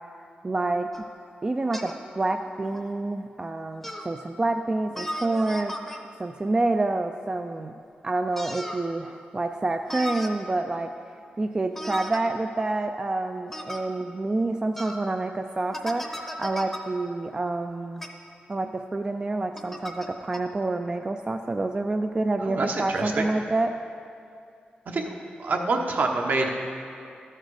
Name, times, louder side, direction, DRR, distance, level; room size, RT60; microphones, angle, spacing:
voice 1, 0.4-0.9 1.4-7.7 8.0-10.9 11.4-18.0 18.5-23.8, right 2 dB, 25° right, 5 dB, 0.3 m, -28 dB
sound 1, 0.9-1.1 1.7-2.0 2.7-2.8 3.8-4.1 4.9-6.0 8.4-8.8 9.9-10.3 11.7-12.2 13.5-13.8 14.8-15.0 15.7-16.8 18.0-18.1 19.6-20.1 20.3-20.4, equal, 5° left, 0.7 m, -35 dB
voice 2, 22.4-23.2 24.9-25.1 25.4-26.5, right 3 dB, 60° right, 2 dB, 1.0 m, -26 dB
12.5 x 6.5 x 4.8 m, 2.4 s
wide cardioid pair, 115°, 3 cm